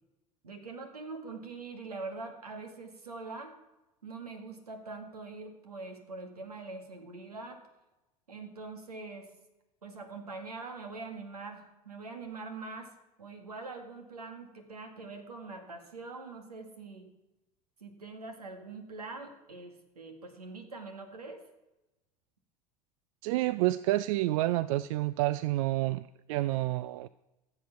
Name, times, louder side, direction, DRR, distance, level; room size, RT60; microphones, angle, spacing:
voice 1, 0.4-3.5 4.0-7.6 8.3-9.3 9.8-12.9 13.2-17.1 17.8-21.4, right 3 dB, 85° right, 5 dB, 1.9 m, -43 dB
voice 2, 23.2-27.1, right 16 dB, 65° right, 17 dB, 0.4 m, -29 dB
14.5 x 7.7 x 5.8 m, 0.98 s
hypercardioid pair, 75°, 19 cm